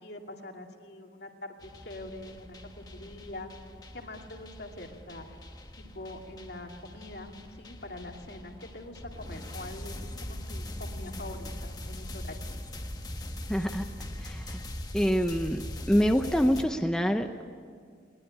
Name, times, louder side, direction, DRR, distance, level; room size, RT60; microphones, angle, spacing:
voice 1, 0.0-3.5 3.9-5.4 5.8-7.3 7.6-10.0 10.2-12.4, left 2 dB, 65° left, 2 dB, 2.5 m, -44 dB
sound 1, 1.6-16.6, left 1 dB, 20° left, 1.3 m, -41 dB
voice 2, 13.5-13.9 14.2-14.6 14.9-17.3, equal, 5° left, 5 dB, 0.7 m, -26 dB
21.5 x 19.5 x 9.8 m, 2.1 s
head